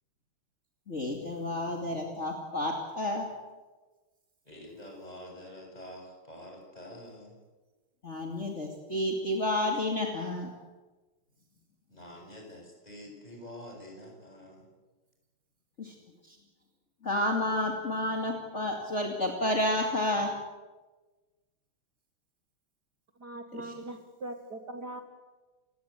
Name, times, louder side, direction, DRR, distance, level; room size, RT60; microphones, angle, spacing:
voice 1, 0.9-3.3 8.0-10.5 15.8-15.9 16.3-16.4 17.0-20.3 23.5-23.7, left 1 dB, 30° left, 1 dB, 2.7 m, -30 dB
voice 2, 4.4-7.4 11.9-14.7, left 1 dB, 15° left, 1 dB, 6.8 m, -47 dB
voice 3, 23.2-25.0, right 1 dB, 50° right, 6 dB, 2.1 m, -41 dB
29.5 x 17.0 x 8.3 m, 1.3 s
omnidirectional pair, 2.4 m